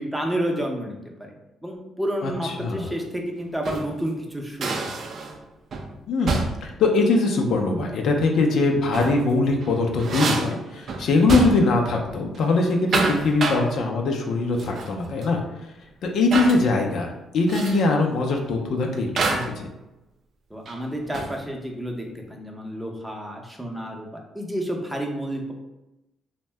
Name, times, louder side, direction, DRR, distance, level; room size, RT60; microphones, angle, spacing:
voice 1, 0.0-1.3 1.6-4.9 20.5-25.5, right 1 dB, 5° right, 1 dB, 0.6 m, -30 dB
voice 2, 2.2-2.9 6.1-15.4 16.0-19.7, left 3 dB, 70° left, 2 dB, 0.4 m, -22 dB
sound 1, 3.4-4.0 4.6-5.4 5.7-5.9 6.3-6.7 8.7-9.2 9.6-11.8 12.1-12.4 12.7-13.7 14.6-15.0 15.2-15.3 16.3-16.6 17.5-17.9 19.2-19.6 20.7-21.4, right 3 dB, 55° right, 0.4 m, -28 dB
2.6 x 2.1 x 3.2 m, 0.94 s
cardioid pair, 75°, 0 cm